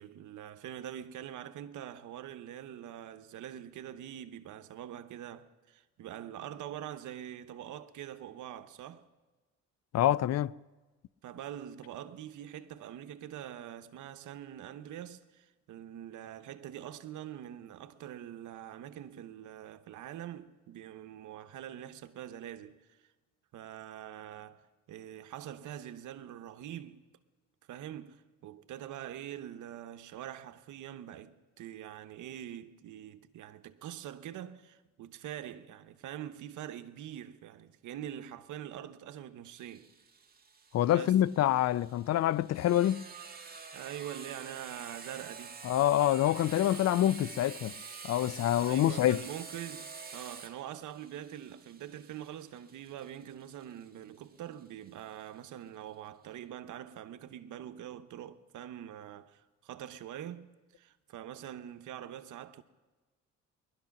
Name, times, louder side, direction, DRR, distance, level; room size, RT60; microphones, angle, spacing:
voice 1, 0.0-9.1 11.2-23.1 23.5-27.1 27.7-39.9 40.9-41.2 43.7-45.6 48.6-60.5 60.7-62.6, right 11 dB, 80° right, 0.9 m, -44 dB
voice 2, 9.9-10.5 40.7-43.1 45.6-47.7 48.0-49.2, left 12 dB, 60° left, 0.4 m, -26 dB
Sawing, 39.5-54.9, right 5 dB, 30° right, 1.7 m, -48 dB
20.0 x 12.0 x 5.9 m
cardioid pair, 90°, 30 cm